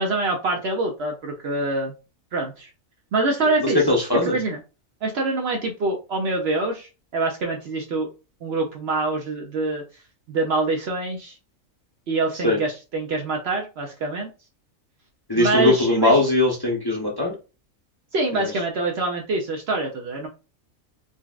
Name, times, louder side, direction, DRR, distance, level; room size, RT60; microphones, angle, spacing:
voice 1, 0.0-1.9 2.3-2.7 3.1-3.8 4.2-4.6 5.0-8.1 8.4-9.8 10.3-11.3 12.1-14.3 15.4-16.2 18.1-20.3, right 2 dB, 60° right, 1 dB, 0.7 m, -25 dB
voice 2, 3.6-4.4 12.4-12.6 15.3-17.3 18.4-18.5, left 2 dB, 20° left, -3 dB, 0.7 m, -20 dB
3.9 x 2.2 x 2.4 m, 0.31 s
omnidirectional pair, 1.4 m